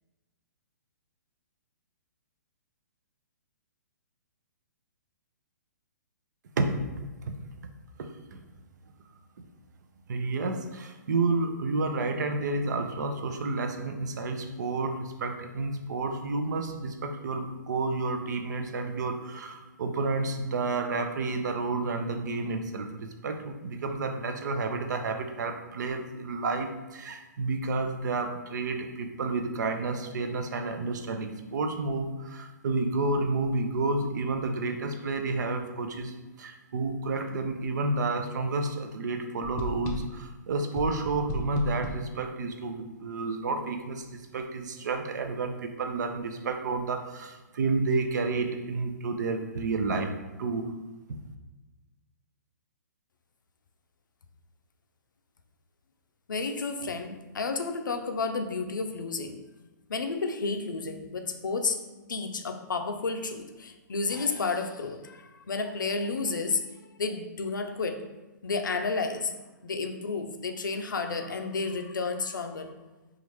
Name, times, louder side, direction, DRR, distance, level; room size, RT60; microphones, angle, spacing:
voice 1, 8.0-8.4 10.1-50.1 50.4-50.7 51.1-51.2, right 3 dB, 65° right, 6 dB, 0.5 m, -30 dB
sound 1, 39.4-40.3 40.7-42.1, left 2 dB, 30° left, 0.5 m, -35 dB
voice 2, 56.3-59.4 59.9-61.8 62.1-68.1 68.4-69.3 69.6-72.7, left 4 dB, 90° left, 6 dB, 0.4 m, -31 dB
4.0 x 2.5 x 3.1 m, 1.1 s
hypercardioid pair, 135°, 10 cm